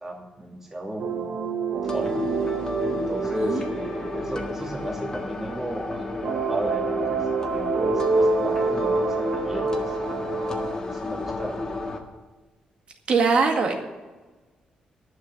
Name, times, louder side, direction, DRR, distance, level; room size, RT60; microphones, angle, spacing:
voice 1, 0.0-2.3 2.9-10.3 10.8-11.8, right 1 dB, 15° right, -1 dB, 2.5 m, -35 dB
sound 1, 1.0-5.9 6.2-10.8, right 4 dB, 65° right, 1.1 m, -27 dB
sound 2, 1.8-12.0, left 3 dB, 25° left, 1.7 m, -32 dB
voice 2, 13.1-13.7, right 4 dB, 45° right, 3 dB, 1.9 m, -21 dB
11.5 x 6.7 x 9.5 m, 1.2 s
cardioid pair, 145°, 3 cm